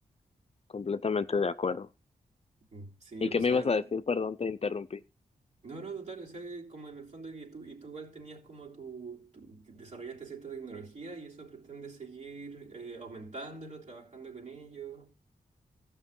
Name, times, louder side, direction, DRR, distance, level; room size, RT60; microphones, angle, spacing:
voice 1, 0.7-1.9 3.2-5.0, left 5 dB, 40° left, 0.6 m, -29 dB
voice 2, 2.7-3.8 5.6-15.1, right 4 dB, 50° right, 3.6 m, -44 dB
15.0 x 6.2 x 5.4 m
cardioid pair, 60°, 15 cm